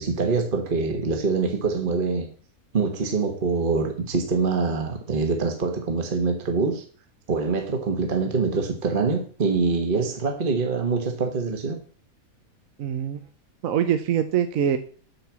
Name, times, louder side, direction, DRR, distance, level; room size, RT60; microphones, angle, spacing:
voice 1, 0.0-2.3 2.7-6.8 7.3-11.8, right 4 dB, 35° right, 1.4 m, -24 dB
voice 2, 12.8-13.2 13.6-14.8, right 9 dB, 70° right, 1.2 m, -23 dB
8.6 x 5.8 x 7.3 m
omnidirectional pair, 1.5 m